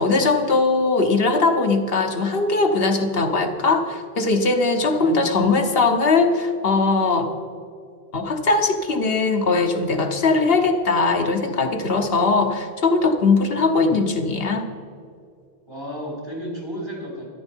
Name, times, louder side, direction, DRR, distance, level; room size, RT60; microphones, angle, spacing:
voice 1, 0.0-7.3 8.1-14.7, left 3 dB, 70° left, 5 dB, 1.3 m, -20 dB
voice 2, 4.8-5.3 13.5-14.0 15.7-17.3, equal, 75° right, -2 dB, 3.7 m, -34 dB
13.5 x 10.5 x 4.5 m, 2.3 s
omnidirectional pair, 1.0 m